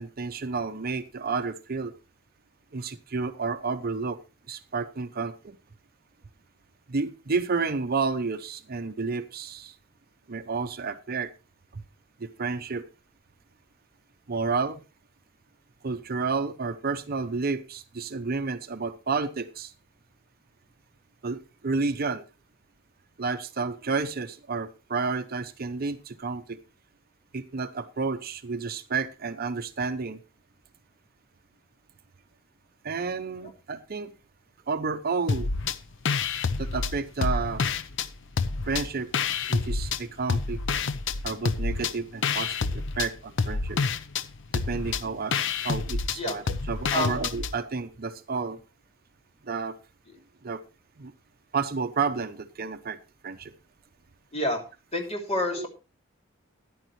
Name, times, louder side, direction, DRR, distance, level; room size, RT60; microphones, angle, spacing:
voice 1, 0.0-1.9 2.7-4.2 4.5-5.6 6.9-9.7 10.3-11.3 11.7-11.8 12.2-12.9 14.3-14.8 15.8-19.7 21.2-22.2 23.2-26.6 27.3-30.2 32.8-34.1 34.7-35.5 36.6-37.6 38.7-39.1 39.5-40.6 41.2-43.8 44.5-45.4 45.6-48.6 49.5-49.7 50.4-50.6 51.0-51.1 51.5-53.0 53.2-53.5 55.5-55.7, right 4 dB, 45° right, 10 dB, 0.7 m, -31 dB
sound 1, 35.3-35.8 36.1-38.1 38.4-40.0 40.3-47.5, left 4 dB, 60° left, 0.7 m, -28 dB
voice 2, 54.9-55.7, left 1 dB, 30° left, 2 dB, 2.9 m, -28 dB
13.5 x 11.0 x 3.1 m, 0.30 s
head